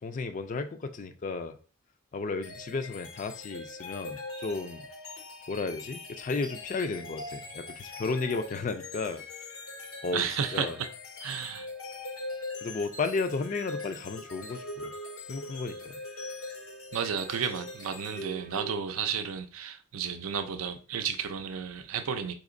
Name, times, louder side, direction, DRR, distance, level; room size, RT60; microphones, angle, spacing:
voice 1, 0.0-1.6 2.1-4.9 5.5-9.2 10.0-10.2 10.5-10.8 12.6-14.9 15.3-16.0, left 4 dB, 35° left, 0.3 m, -33 dB
sound 1, 2.4-19.1, left 2 dB, 85° left, 0.9 m, -42 dB
voice 2, 10.1-10.9 11.2-11.7 16.9-22.3, right 7 dB, 85° right, 0.5 m, -32 dB
4.1 x 2.8 x 2.5 m
head